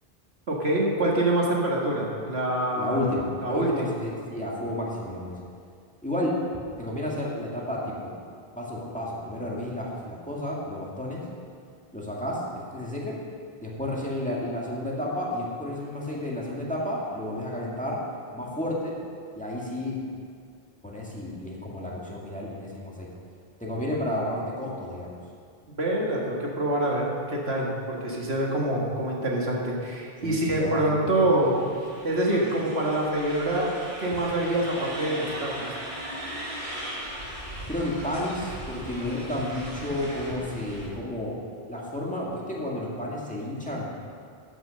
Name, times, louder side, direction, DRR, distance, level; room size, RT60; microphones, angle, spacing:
voice 1, 0.5-3.1 3.4-3.9 25.7-31.6 32.0-35.7, right 1 dB, 80° right, -2 dB, 2.0 m, -26 dB
voice 2, 2.8-5.4 6.0-6.3 6.8-8.1 8.6-11.2 11.9-13.2 13.6-18.0 18.3-18.9 19.4-20.0 20.8-23.1 23.6-25.2 30.2-31.2 37.7-41.3 41.7-43.9, left 1 dB, 5° left, -4 dB, 1.9 m, -31 dB
sound 1, 31.4-40.9, equal, 50° right, 2.8 m, -38 dB
14.0 x 6.5 x 6.5 m, 2.2 s
omnidirectional pair, 1.1 m